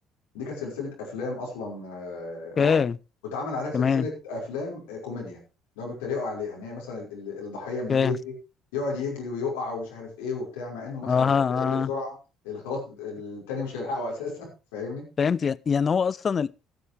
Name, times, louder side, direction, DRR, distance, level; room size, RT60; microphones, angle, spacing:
voice 1, 0.3-2.9 3.2-5.4 5.8-8.3 8.7-12.2 12.4-15.1, left 3 dB, 70° left, 5.3 m, -33 dB
voice 2, 2.6-3.0 3.7-4.1 7.9-8.2 11.1-11.9 15.2-16.5, left 6 dB, 35° left, 0.5 m, -23 dB
14.0 x 13.5 x 3.3 m
figure-of-eight pair, 55°, 0 cm